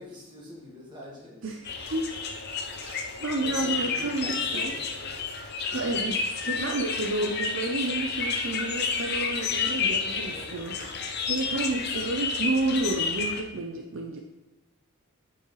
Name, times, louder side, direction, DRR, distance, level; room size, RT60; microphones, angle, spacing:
voice 1, 0.0-1.4 3.4-5.2 5.7-6.1 10.2-10.9, left 1 dB, 20° right, -5 dB, 2.0 m, -45 dB
voice 2, 1.4-2.3 2.8-4.7 5.7-14.2, right 2 dB, 60° right, 2 dB, 0.6 m, -31 dB
sound 1, 1.6-13.4, left 5 dB, 50° left, 0.7 m, -31 dB
8.4 x 5.7 x 3.2 m, 1.1 s
head